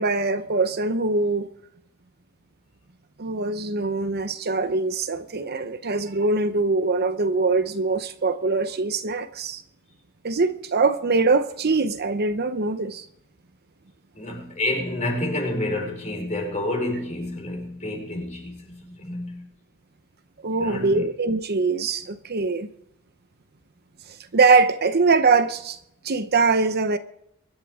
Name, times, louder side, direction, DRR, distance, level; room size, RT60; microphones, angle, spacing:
voice 1, 0.0-1.5 3.2-9.6 10.2-13.1 20.4-22.7 24.3-25.8 26.0-27.0, right 3 dB, 45° right, 0.7 m, -22 dB
voice 2, 14.1-19.4 20.6-21.0, left 1 dB, 30° left, 5.0 m, -29 dB
24.0 x 11.5 x 3.7 m
head